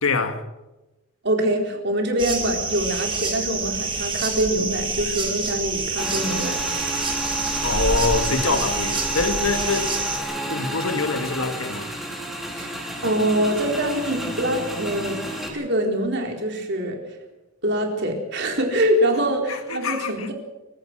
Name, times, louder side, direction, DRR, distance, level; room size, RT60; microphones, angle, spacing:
voice 1, 0.0-0.5 7.6-9.9 10.4-11.9 19.5-20.3, left 3 dB, 80° left, 1.8 m, -25 dB
voice 2, 1.2-6.5 12.6-12.7 13.0-15.2 15.5-17.0 17.6-20.3, right 1 dB, 55° right, 4.5 m, -24 dB
sound 1, 2.2-10.2, right 3 dB, 25° right, 3.8 m, -27 dB
Motorcycle / Engine, 6.0-15.5, equal, ahead, 3.8 m, -31 dB
29.0 x 16.0 x 6.3 m
head